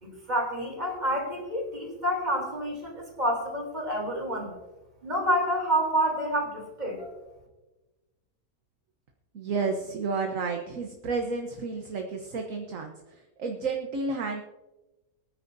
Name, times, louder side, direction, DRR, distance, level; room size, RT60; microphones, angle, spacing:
voice 1, 0.0-4.5 5.0-7.2, equal, 30° right, 0 dB, 3.7 m, -28 dB
voice 2, 9.3-12.9 13.4-14.4, right 4 dB, 60° right, 3 dB, 1.4 m, -31 dB
23.5 x 9.8 x 2.7 m, 1.1 s
omnidirectional pair, 1.6 m